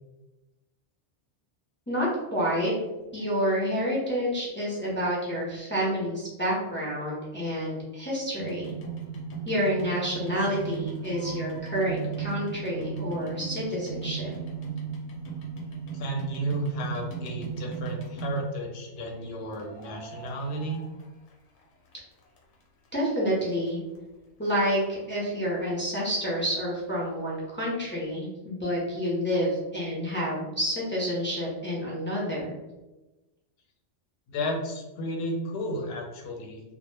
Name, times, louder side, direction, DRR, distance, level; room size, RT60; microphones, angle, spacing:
voice 1, 1.9-2.7 3.1-8.7 9.5-14.3 22.9-23.8 24.4-32.6, equal, 20° left, -6 dB, 0.3 m, -29 dB
sound 1, 8.4-18.7 19.5-21.6 21.9-22.9 23.4-23.5 23.7-23.8 24.0-24.1 24.5-24.6 24.8-24.9, right 6 dB, 90° left, 1.0 m, -36 dB
voice 2, 15.9-20.8 34.3-36.6, equal, 65° left, 1 dB, 0.7 m, -33 dB
2.1 x 2.0 x 3.0 m, 1.1 s
omnidirectional pair, 1.2 m